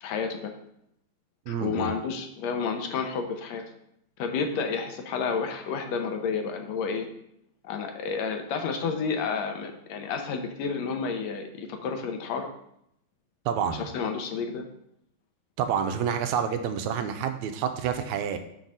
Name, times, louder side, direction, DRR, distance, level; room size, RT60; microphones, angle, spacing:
voice 1, 0.0-0.5 1.5-3.6 4.2-7.1 7.6-12.5 13.7-14.6, left 5 dB, 70° left, 5 dB, 1.9 m, -30 dB
voice 2, 1.5-1.9 13.5-13.9 15.6-18.4, right 8 dB, 80° right, 7 dB, 2.0 m, -28 dB
6.1 x 4.0 x 6.1 m, 0.75 s
omnidirectional pair, 3.4 m